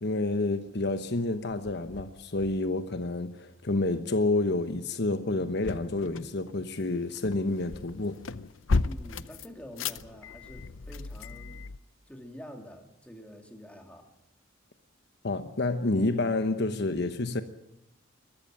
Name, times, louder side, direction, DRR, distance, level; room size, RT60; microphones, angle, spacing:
voice 1, 0.0-8.2 15.2-17.4, left 2 dB, 60° left, 1.0 m, -29 dB
sound 1, 0.7-1.0 1.5-2.7 5.3-11.8, left 3 dB, 90° left, 0.7 m, -35 dB
voice 2, 8.8-11.7 12.1-14.1, equal, 5° left, 2.8 m, -47 dB
22.0 x 14.0 x 9.0 m
head